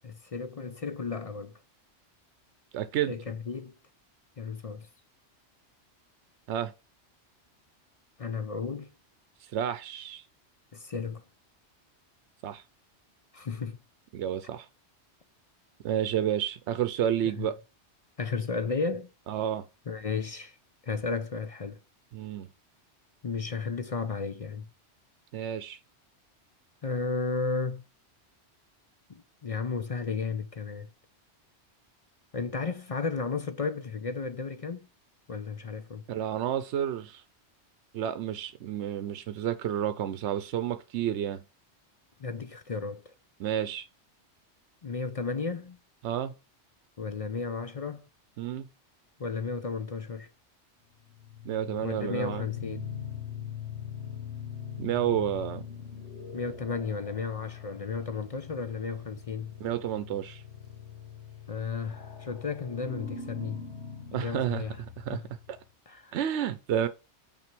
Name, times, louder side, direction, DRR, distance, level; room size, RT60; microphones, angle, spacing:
voice 1, 0.0-1.6 3.1-3.7 4.4-4.9 8.2-8.9 10.7-11.2 13.3-13.8 17.4-17.5 18.2-19.1 19.9-20.6 20.8-21.8 23.2-24.7 26.8-27.8 29.1-30.9 32.3-34.9 35.3-36.1 42.2-43.1 44.8-45.8 47.0-48.0 49.2-50.3 51.8-52.9 56.3-59.6 61.5-63.7 64.1-64.8 65.1-65.3 65.9-66.1, left 4 dB, 45° left, 0.5 m, -34 dB
voice 2, 2.7-3.1 6.5-6.7 9.4-10.2 12.4-12.6 14.1-14.7 15.8-17.6 19.3-19.7 22.1-22.5 25.3-25.8 36.1-37.2 37.9-41.4 43.4-43.9 46.0-46.3 48.4-48.7 51.4-52.5 54.8-55.6 59.6-60.4 64.1-64.6 65.0-65.2 65.5-65.6 66.1-66.9, right 10 dB, 80° right, 0.9 m, -30 dB
sound 1, 51.0-65.6, left 8 dB, 75° left, 1.6 m, -42 dB
5.9 x 4.2 x 6.0 m
omnidirectional pair, 1.2 m